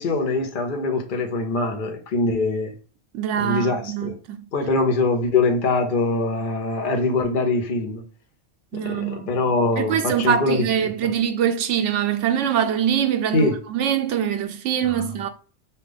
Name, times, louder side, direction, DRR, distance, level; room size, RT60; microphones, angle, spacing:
voice 1, 0.0-2.7 3.3-4.2 4.5-8.0 8.7-10.9 13.3-13.6 14.9-15.0, left 3 dB, 45° left, 0.9 m, -23 dB
voice 2, 3.1-4.4 8.7-9.3 9.8-15.3, right 9 dB, 75° right, 0.9 m, -23 dB
5.6 x 2.4 x 3.4 m
omnidirectional pair, 1.3 m